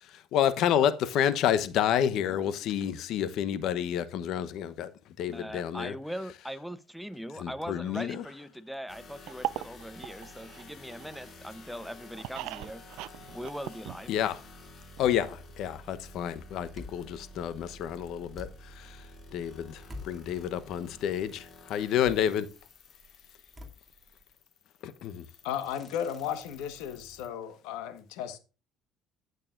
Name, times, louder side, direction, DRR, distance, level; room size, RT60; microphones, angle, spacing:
voice 1, 0.0-4.9 5.2-5.9 7.4-8.2 14.1-14.4 15.0-22.5 24.8-25.3, left 10 dB, 70° left, 0.9 m, -29 dB
voice 2, 5.3-12.8 13.3-14.1, equal, ahead, 0.7 m, -40 dB
sound 1, 8.9-27.3, left 2 dB, 45° left, 2.5 m, -51 dB
sound 2, 9.3-11.3 11.7-14.4 14.7-14.8 15.0-15.1, right 15 dB, 80° right, 0.4 m, -39 dB
sound 3, 15.8-24.4, left 2 dB, 15° right, 2.5 m, -51 dB
voice 3, 25.4-28.4, left 9 dB, 85° left, 1.3 m, -35 dB
15.5 x 6.7 x 2.5 m
supercardioid pair, 90°, 0 cm